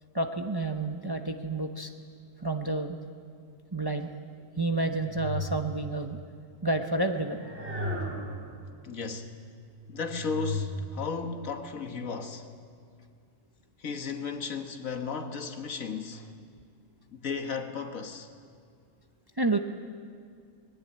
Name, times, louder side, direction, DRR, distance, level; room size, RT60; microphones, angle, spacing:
voice 1, 0.1-1.9 2.4-3.0 3.7-4.1 4.6-6.2 6.6-7.5 19.4-19.6, right 2 dB, 20° right, 0.7 m, -29 dB
sound 1, 4.7-6.1 7.0-8.8 9.5-10.9, equal, 55° right, 4.2 m, -36 dB
voice 2, 8.8-9.3 9.9-12.5 13.8-16.3 17.1-18.3, left 5 dB, 80° left, 1.8 m, -35 dB
20.0 x 18.0 x 8.7 m
omnidirectional pair, 1.4 m